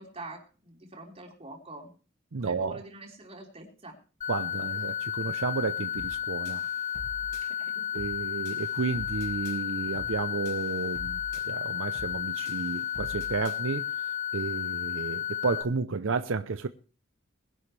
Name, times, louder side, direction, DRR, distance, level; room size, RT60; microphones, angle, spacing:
voice 1, 0.0-1.9 2.4-4.0 7.4-7.9, right 2 dB, 30° right, 3.9 m, -45 dB
voice 2, 2.3-2.8 4.3-6.7 7.9-13.9 14.3-16.7, right 4 dB, 80° right, 0.7 m, -32 dB
sound 1, 4.2-15.6, left 10 dB, 35° left, 2.7 m, -33 dB
sound 2, 6.0-6.2 6.5-7.4 8.0-8.2 8.5-9.6 10.0-10.2 10.5-11.4 12.0-12.2 12.5-13.6, left 2 dB, 55° left, 5.0 m, -45 dB
20.5 x 11.5 x 3.3 m
head